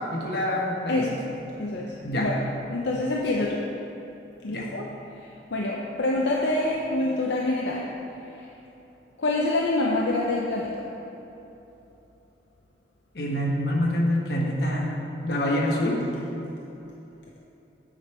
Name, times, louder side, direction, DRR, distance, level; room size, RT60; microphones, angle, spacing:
voice 1, 0.1-1.1 2.0-2.3 4.5-4.7 13.1-15.0 15.2-16.0, left 1 dB, 65° left, -2 dB, 1.2 m, -26 dB
voice 2, 0.9-1.2 1.6-2.4 2.7-3.7 4.4-4.9 5.2-7.9 8.3-8.5 9.2-10.8, left 2 dB, 80° left, -3 dB, 0.6 m, -26 dB
9.0 x 5.2 x 4.4 m, 3.0 s
head